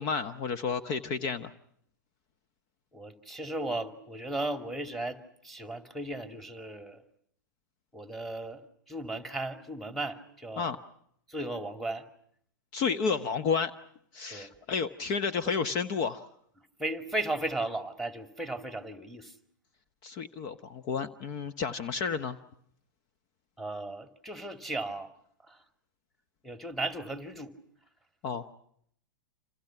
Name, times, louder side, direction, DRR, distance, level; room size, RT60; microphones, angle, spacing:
voice 1, 0.0-1.5 10.6-10.8 12.7-13.7 14.1-16.3 20.0-22.4 28.2-28.5, left 5 dB, 40° left, 11 dB, 1.2 m, -31 dB
voice 2, 2.9-5.2 5.4-7.0 7.9-8.6 8.9-10.7 11.3-12.0 14.3-14.5 15.4-15.5 16.8-19.3 23.6-25.1 25.5-25.6 26.4-27.5, right 2 dB, ahead, 8 dB, 2.4 m, -35 dB
29.5 x 27.5 x 5.9 m, 0.67 s
figure-of-eight pair, 100°, 10 cm